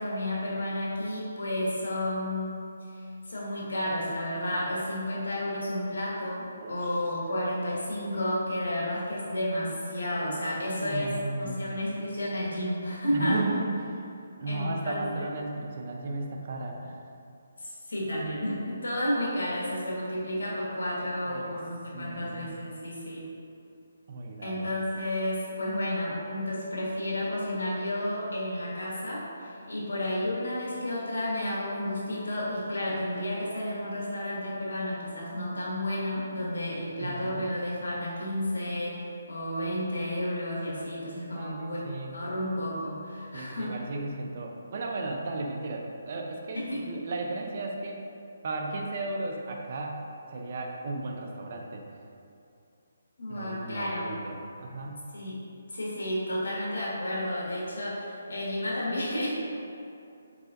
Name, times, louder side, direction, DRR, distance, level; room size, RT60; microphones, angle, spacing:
voice 1, 0.0-2.6 2.9-11.1 11.4-13.4 14.5-15.3 17.6-23.2 24.4-39.0 39.3-41.8 42.1-43.8 46.5-46.9 53.2-54.0 55.1-55.4 55.7-59.3, left 1 dB, 85° left, -5 dB, 1.4 m, -31 dB
voice 2, 6.6-7.0 10.6-11.6 13.1-14.0 14.4-17.0 21.2-21.6 21.9-22.5 24.1-24.7 37.0-37.5 41.2-42.1 43.3-48.0 48.4-51.9 53.3-55.1, right 2 dB, 45° right, 1 dB, 0.5 m, -35 dB
4.8 x 4.3 x 2.6 m, 2.6 s
hypercardioid pair, 160°, 0 cm